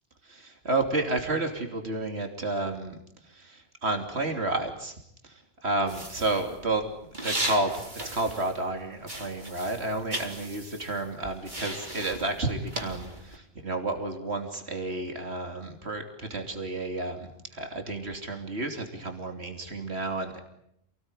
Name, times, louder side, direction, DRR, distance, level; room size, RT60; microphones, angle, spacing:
voice 1, 0.2-5.0 5.2-6.8 7.2-7.8 8.1-20.4, right 2 dB, 80° right, 5 dB, 3.4 m, -31 dB
sound 1, 5.9-8.8 9.0-13.4, right 1 dB, 45° right, 4.1 m, -37 dB
28.5 x 19.5 x 9.9 m, 0.75 s
omnidirectional pair, 1.1 m